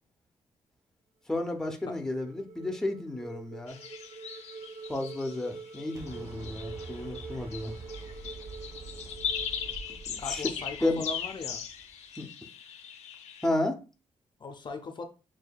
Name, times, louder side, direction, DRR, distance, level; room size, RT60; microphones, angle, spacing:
voice 1, 1.3-3.8 4.9-7.7 10.1-10.4 10.8-11.0 12.2-12.3 13.4-13.8, left 2 dB, 5° left, 0.7 m, -32 dB
sound 1, 1.5-10.6, right 4 dB, 50° right, 0.7 m, -46 dB
sound 2, 3.7-13.5, left 8 dB, 85° left, 0.7 m, -39 dB
Explosion, 5.9-11.9, right 3 dB, 35° right, 1.3 m, -46 dB
voice 2, 10.2-11.6 14.4-15.0, left 3 dB, 45° left, 0.6 m, -38 dB
6.6 x 2.7 x 2.3 m
cardioid pair, 105°, 11 cm